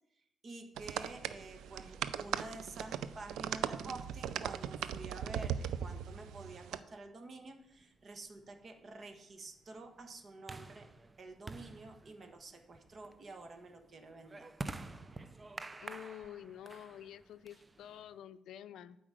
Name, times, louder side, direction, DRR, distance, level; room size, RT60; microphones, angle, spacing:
voice 1, 0.4-10.9 11.2-14.5, right 2 dB, 45° right, 5 dB, 1.4 m, -49 dB
sound 1, 0.8-6.8, right 9 dB, 80° right, 0.4 m, -39 dB
sound 2, 7.8-18.2, right 3 dB, 20° right, 0.5 m, -49 dB
voice 2, 15.8-19.0, left 10 dB, 80° left, 14 dB, 0.4 m, -49 dB
8.8 x 5.1 x 7.7 m, 0.85 s
cardioid pair, 90°, 0 cm